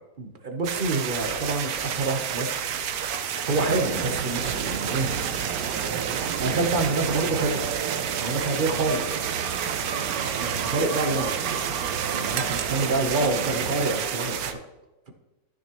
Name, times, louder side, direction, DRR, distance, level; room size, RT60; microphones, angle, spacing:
voice 1, 0.2-2.6 3.4-5.1 6.4-7.7 8.2-9.1 10.1-14.4, right 2 dB, 45° right, 4 dB, 0.7 m, -27 dB
sound 1, 0.6-14.5, right 8 dB, 65° right, 1.0 m, -30 dB
sound 2, 3.5-13.9, right 7 dB, 80° right, 1.3 m, -34 dB
13.0 x 6.4 x 2.9 m, 1.1 s
omnidirectional pair, 1.9 m